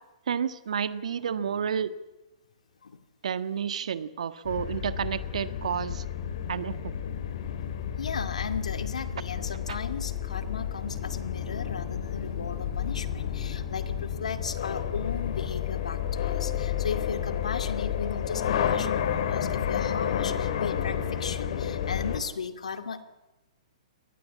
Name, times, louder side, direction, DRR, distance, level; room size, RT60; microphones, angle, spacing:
voice 1, 0.3-1.9 3.2-6.0 6.5-6.9 9.7-9.8, right 7 dB, 75° right, 12 dB, 1.5 m, -30 dB
sound 1, 4.4-22.2, left 9 dB, 60° left, 2.6 m, -31 dB
voice 2, 8.0-23.0, left 5 dB, 80° left, 9 dB, 2.3 m, -36 dB
sound 2, 9.5-14.5, left 4 dB, 25° left, 5.3 m, -48 dB
23.5 x 18.5 x 8.6 m, 1.0 s
hypercardioid pair, 130°, 4 cm